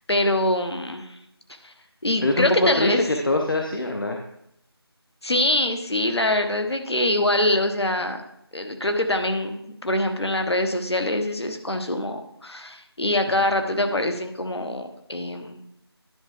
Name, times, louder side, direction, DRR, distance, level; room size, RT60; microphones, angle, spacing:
voice 1, 0.1-1.1 1.6-1.7 2.0-3.0 5.2-8.2 8.5-15.6, left 1 dB, 75° left, 5 dB, 1.2 m, -24 dB
voice 2, 2.2-4.2 13.5-13.7, left 1 dB, 55° left, 2 dB, 0.7 m, -23 dB
10.5 x 5.4 x 3.6 m, 0.79 s
figure-of-eight pair, 170°, 14 cm